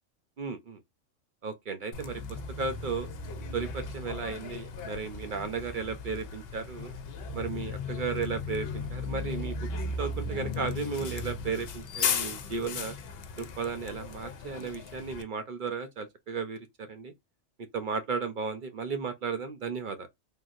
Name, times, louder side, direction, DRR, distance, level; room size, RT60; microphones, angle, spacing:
voice 1, 0.4-0.8 1.4-3.1 3.5-6.9 7.3-9.5 10.0-12.9 13.4-17.1 17.7-20.1, right 5 dB, 55° right, 0.6 m, -34 dB
Bus, 1.9-15.2, left 4 dB, 60° left, 0.7 m, -36 dB
3.4 x 2.6 x 2.4 m
omnidirectional pair, 1.3 m